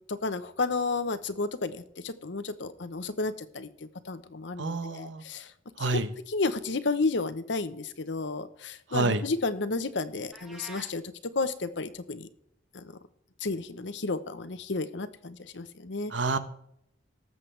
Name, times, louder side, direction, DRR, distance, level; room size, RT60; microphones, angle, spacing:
voice 1, 0.1-3.7 4.0-5.5 5.8-11.0 11.3-12.3 12.7-12.8 13.4-16.1, left 3 dB, 70° left, 12 dB, 0.9 m, -32 dB
voice 2, 4.6-5.2 5.8-6.1 8.9-9.2 16.1-16.4, right 3 dB, 75° right, 11 dB, 1.0 m, -28 dB
sound 1, 10.3-11.0, right 1 dB, ahead, 1.5 m, -46 dB
19.0 x 7.6 x 3.3 m, 0.72 s
head